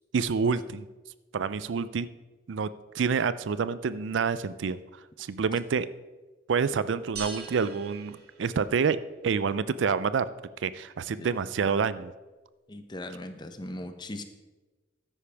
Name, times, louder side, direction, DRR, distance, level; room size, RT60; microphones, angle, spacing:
voice 1, 0.1-0.9 1.3-2.1 2.5-4.8 5.2-5.9 6.5-9.0 9.2-10.3 10.6-12.1, right 5 dB, 75° right, 15 dB, 0.4 m, -27 dB
sound 1, 7.2-9.0, right 4 dB, 55° right, 2.1 m, -42 dB
voice 2, 12.7-14.2, left 1 dB, 25° left, 8 dB, 0.7 m, -39 dB
13.0 x 10.0 x 3.4 m, 1.2 s
head